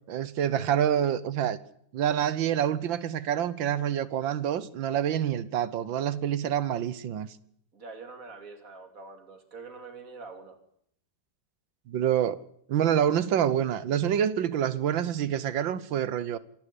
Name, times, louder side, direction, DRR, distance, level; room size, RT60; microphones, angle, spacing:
voice 1, 0.1-1.6 1.9-7.3 11.9-12.4 12.7-16.4, right 9 dB, 85° right, 1.8 m, -27 dB
voice 2, 7.7-10.6, right 4 dB, 45° right, 3.2 m, -45 dB
26.5 x 12.0 x 9.9 m
omnidirectional pair, 2.0 m